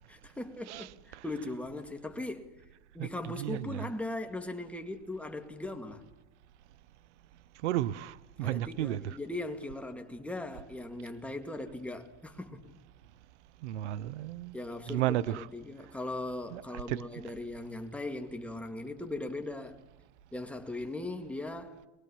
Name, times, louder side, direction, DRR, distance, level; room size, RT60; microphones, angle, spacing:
voice 1, 0.1-2.5 2.9-6.0 8.4-12.8 14.5-19.8 20.3-21.9, left 2 dB, 5° left, 2.2 m, -39 dB
voice 2, 0.7-1.2 3.0-3.9 7.6-9.2 13.6-14.6 14.9-15.5 16.5-16.6 16.9-17.0, right 14 dB, 85° right, 0.8 m, -33 dB
22.5 x 22.5 x 7.2 m
supercardioid pair, 120°, 34 cm